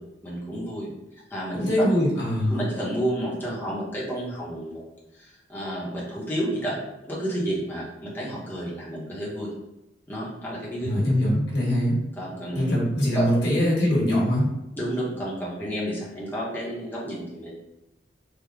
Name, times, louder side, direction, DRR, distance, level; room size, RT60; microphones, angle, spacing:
voice 1, 0.2-0.9 1.3-1.6 2.5-4.8 5.1-6.8 7.0-9.5 10.1-10.9 12.2-12.6 13.1-13.2 14.8-17.5, right 1 dB, 10° left, -6 dB, 0.9 m, -31 dB
voice 2, 1.5-2.6 10.8-11.9 12.5-14.5, equal, 65° left, -6 dB, 1.5 m, -22 dB
3.6 x 2.2 x 3.4 m, 0.93 s
head